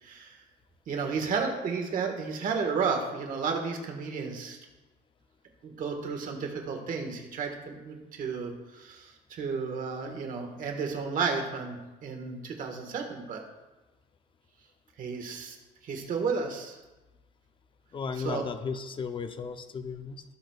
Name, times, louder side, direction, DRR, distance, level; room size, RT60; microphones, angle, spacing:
voice 1, 0.0-0.4 0.9-4.6 5.6-13.4 15.0-15.6 15.8-16.8 18.2-18.4, right 5 dB, 50° right, 3 dB, 1.5 m, -32 dB
voice 2, 17.9-20.2, left 5 dB, 30° left, 9 dB, 0.6 m, -35 dB
17.0 x 6.0 x 2.4 m, 1.1 s
cardioid pair, 150°, 18 cm